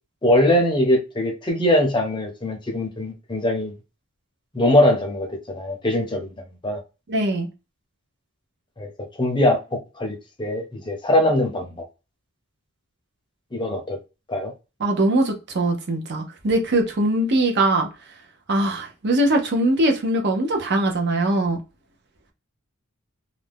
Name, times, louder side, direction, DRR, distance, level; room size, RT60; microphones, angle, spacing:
voice 1, 0.2-3.7 4.5-6.3 6.6-6.8 8.8-8.9 9.2-11.8 13.5-14.0 14.3-14.5, left 1 dB, 20° left, 0.6 m, -21 dB
voice 2, 7.1-7.5 14.8-17.9 18.5-21.6, right 1 dB, 50° right, 0.6 m, -21 dB
2.5 x 2.2 x 3.3 m
head